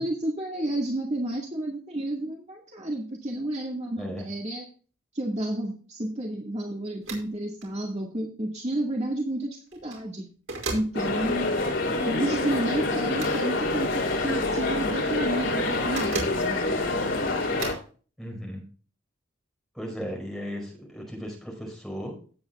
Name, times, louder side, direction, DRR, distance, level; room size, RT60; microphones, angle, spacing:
voice 1, 0.0-4.6 5.1-10.2 10.7-11.5 12.1-16.7, right 1 dB, 30° right, -1 dB, 2.0 m, -31 dB
sound 1, 7.0-7.3 7.6-7.7 9.7-10.0 10.5-10.9 13.0-13.4 15.7-16.4 17.6-17.9, right 3 dB, 75° right, 5.3 m, -34 dB
sound 2, 10.9-17.7, left 2 dB, 65° left, 3.7 m, -27 dB
voice 2, 18.2-18.6 19.7-22.2, equal, ahead, -1 dB, 4.9 m, -36 dB
17.0 x 8.7 x 2.4 m, 0.39 s
head